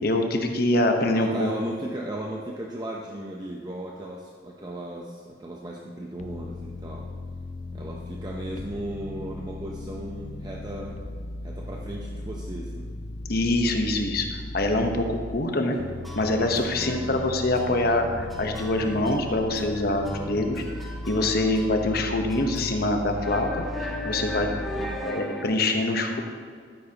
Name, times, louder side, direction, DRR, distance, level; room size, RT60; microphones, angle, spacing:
voice 1, 0.0-1.5 13.3-15.8 16.1-20.6 21.1-23.6 24.0-24.5 25.0-26.2, left 2 dB, 55° left, 4 dB, 1.0 m, -24 dB
voice 2, 1.1-7.1 7.7-11.0 11.4-12.9 15.5-15.9 16.8-17.2 24.8-25.2, right 1 dB, 20° right, -1 dB, 0.7 m, -36 dB
sound 1, 6.2-15.4 15.8-25.0, left 2 dB, 40° left, 0.4 m, -37 dB
sound 2, 16.0-17.3 17.5-18.0 18.3-22.0 22.3-22.7 23.1-25.4, left 1 dB, ahead, 1.1 m, -39 dB
12.5 x 10.0 x 2.9 m, 2.1 s
head